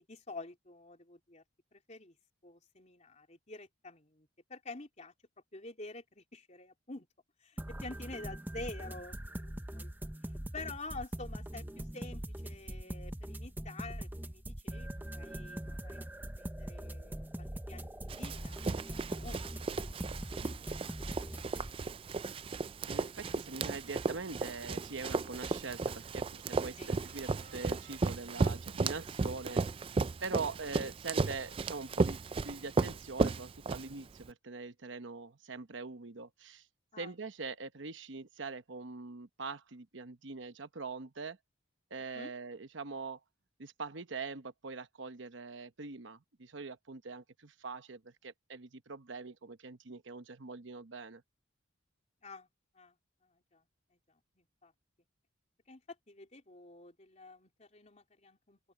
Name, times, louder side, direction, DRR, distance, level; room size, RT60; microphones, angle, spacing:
voice 1, 0.0-1.4 1.7-2.2 2.4-5.1 5.5-7.1 7.4-10.0 10.5-16.1 16.4-19.4 19.9-21.0 26.8-26.9 30.3-30.4 36.9-37.1 42.0-42.3 52.2-52.5 52.8-53.0 53.2-53.6 53.9-54.0 54.4-54.7 55.7-55.8 56.1-58.6, left 3 dB, 35° left, 3.6 m, -49 dB
sound 1, 7.6-21.7, right 1 dB, 10° right, 0.7 m, -42 dB
Run, 18.1-34.3, right 3 dB, 25° right, 0.3 m, -35 dB
voice 2, 22.9-29.9 30.2-32.2 32.4-36.7 37.0-41.4 41.9-43.2 43.6-51.2, right 4 dB, 65° right, 1.0 m, -43 dB
sound 2, 27.1-29.3 30.7-30.9, right 5 dB, 50° right, 6.3 m, -62 dB
open air
head